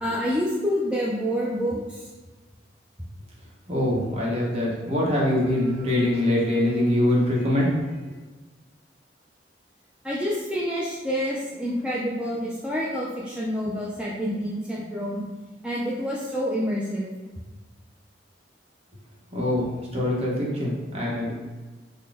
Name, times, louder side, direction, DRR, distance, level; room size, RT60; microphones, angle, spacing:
voice 1, 0.0-2.1 10.0-15.2 15.6-17.1, equal, 5° right, -6 dB, 0.4 m, -28 dB
voice 2, 3.7-8.1 19.3-21.3, left 1 dB, 35° right, -4 dB, 0.9 m, -24 dB
4.0 x 2.1 x 3.4 m, 1.3 s
head